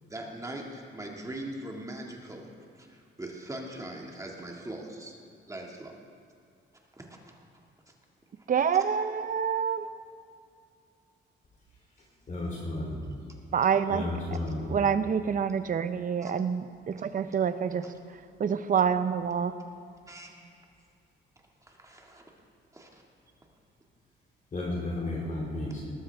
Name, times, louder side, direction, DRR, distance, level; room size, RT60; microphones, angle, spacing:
voice 1, 0.1-2.5 2.8-5.2 5.5-5.9 7.0-7.4 16.2-16.3 20.1-20.3 21.6-22.2 22.7-23.0, right 1 dB, 15° right, 0 dB, 2.0 m, -41 dB
voice 2, 8.5-9.9 13.5-14.4 14.7-17.8 18.4-19.5, right 7 dB, 45° right, 12 dB, 0.7 m, -27 dB
voice 3, 12.3-13.0 13.9-14.6 24.5-25.8, left 2 dB, 40° left, -3 dB, 3.5 m, -33 dB
19.5 x 13.0 x 3.5 m, 2.5 s
cardioid pair, 105°, 20 cm